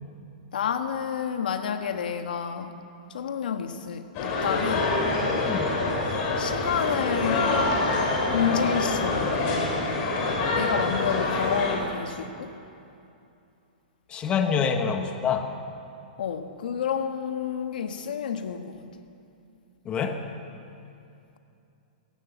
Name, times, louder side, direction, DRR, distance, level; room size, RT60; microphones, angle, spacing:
voice 1, 0.5-2.8 3.1-5.0 6.4-7.9 8.3-9.7 10.5-12.6 16.2-18.9, left 7 dB, 75° left, 7 dB, 1.6 m, -30 dB
sound 1, 4.1-11.8, left 2 dB, 40° left, 5.5 m, -26 dB
voice 2, 5.4-5.8 14.1-15.5 19.8-20.3, left 6 dB, 20° left, 5 dB, 1.5 m, -26 dB
20.5 x 18.0 x 7.3 m, 2.6 s
hypercardioid pair, 140°, 5 cm